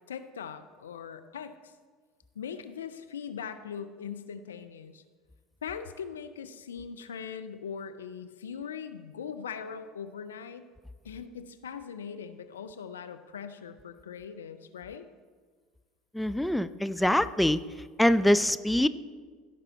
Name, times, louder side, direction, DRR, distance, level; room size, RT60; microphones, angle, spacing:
voice 1, 0.1-1.7 2.4-5.0 5.6-10.6 11.0-15.1, left 7 dB, 85° left, 10 dB, 0.5 m, -40 dB
voice 2, 16.1-17.6 18.0-18.9, left 1 dB, 5° left, 13 dB, 0.4 m, -24 dB
16.0 x 5.5 x 4.1 m, 1.5 s
hypercardioid pair, 75°, 0 cm